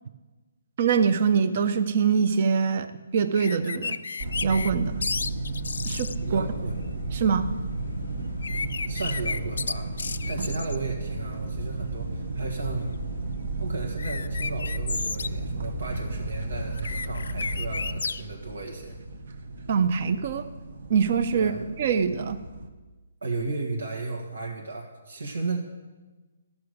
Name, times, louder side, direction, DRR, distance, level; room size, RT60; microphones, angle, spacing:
voice 1, 0.8-4.0 4.4-5.0 5.9-6.4 7.1-7.5 19.7-20.5 20.9-21.5 21.8-22.4, right 6 dB, 40° right, 12 dB, 0.7 m, -24 dB
sound 1, 3.3-4.7 5.0-6.2 8.4-10.8 14.0-15.3 16.7-18.2, left 5 dB, 80° left, 0.4 m, -32 dB
sound 2, 4.2-22.7, right 2 dB, 60° right, 1.2 m, -33 dB
voice 2, 6.2-6.8 8.9-9.9 10.3-12.9 13.6-18.9 21.3-21.6 23.2-25.6, right 3 dB, 85° right, 0 dB, 1.7 m, -34 dB
13.0 x 6.0 x 6.5 m, 1.2 s
hypercardioid pair, 170°, 0 cm